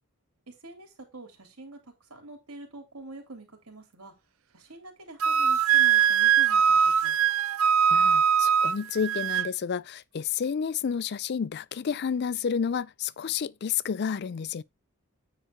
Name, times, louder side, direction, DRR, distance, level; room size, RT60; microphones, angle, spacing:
voice 1, 0.5-1.8 2.1-4.1 4.5-7.2, right 2 dB, 80° right, 3.3 m, -46 dB
Wind instrument woodwind instrument, 5.2-9.5, right 7 dB, 65° right, 0.6 m, -22 dB
voice 2, 7.9-14.6, left 7 dB, 50° left, 0.4 m, -30 dB
9.2 x 4.4 x 4.5 m
head